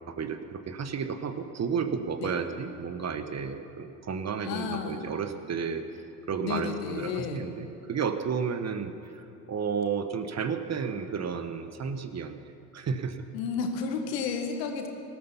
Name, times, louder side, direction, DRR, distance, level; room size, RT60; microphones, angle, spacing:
voice 1, 0.1-5.8 6.3-13.2, right 6 dB, 35° right, 9 dB, 1.2 m, -32 dB
voice 2, 4.4-5.0 6.4-7.5 13.3-14.9, left 6 dB, 75° left, 4 dB, 1.8 m, -32 dB
19.5 x 13.0 x 5.7 m, 2.9 s
hypercardioid pair, 60°, 49 cm